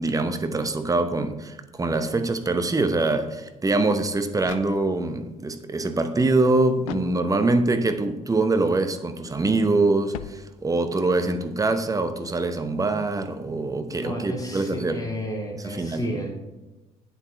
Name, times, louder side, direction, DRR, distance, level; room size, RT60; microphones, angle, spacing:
voice 1, 0.0-15.0 15.5-16.1, right 2 dB, 20° right, 1.0 m, -24 dB
sound 1, 4.4-5.3 6.8-7.7 10.1-11.0, left 12 dB, 70° left, 0.4 m, -41 dB
voice 2, 13.9-16.3, equal, 20° left, 2.7 m, -32 dB
8.5 x 7.6 x 4.4 m
figure-of-eight pair, 45°, 18 cm